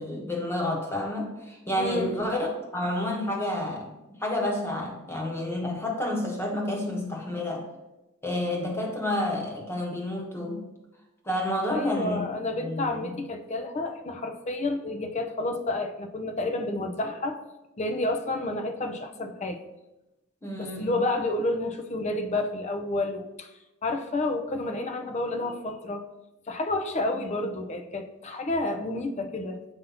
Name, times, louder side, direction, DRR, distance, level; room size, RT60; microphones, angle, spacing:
voice 1, 0.0-3.9 4.2-7.7 8.2-10.6 11.2-12.2 12.6-13.1 20.4-21.0, left 1 dB, 10° left, -1 dB, 1.1 m, -30 dB
voice 2, 1.8-2.1 11.7-17.4 17.8-19.6 20.6-23.5 23.8-26.0 26.5-29.7, left 2 dB, 35° left, 6 dB, 0.5 m, -30 dB
7.0 x 2.7 x 5.6 m, 0.98 s
head